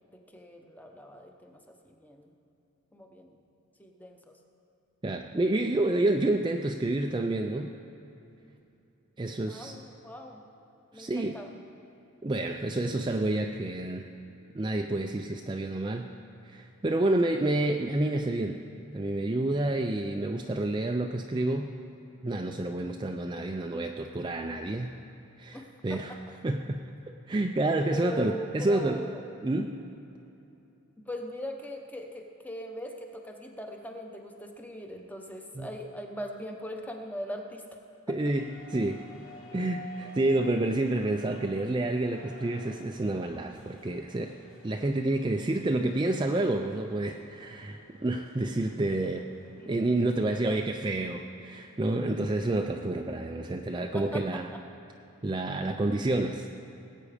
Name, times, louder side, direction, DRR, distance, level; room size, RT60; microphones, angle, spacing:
voice 1, 0.1-2.3 2.9-3.4 3.8-4.3 9.5-10.4 10.9-11.5 25.5-26.2 27.9-29.2 31.1-37.6 38.1-38.2 49.6-50.6 53.9-54.4, equal, 5° left, 3 dB, 0.8 m, -41 dB
voice 2, 5.0-7.7 9.2-9.8 10.9-11.4 12.2-14.1 14.5-16.1 16.4-18.6 18.9-21.7 22.2-25.0 25.4-26.2 26.4-26.8 27.3-29.0 29.4-29.8 35.6-35.7 38.1-39.0 39.5-44.4 44.6-49.3 49.7-54.5 55.2-56.5, right 2 dB, 20° right, 3 dB, 0.4 m, -29 dB
sound 1, 38.3-51.0, left 1 dB, 60° left, 2.6 m, -52 dB
19.5 x 8.5 x 5.0 m, 2.9 s
head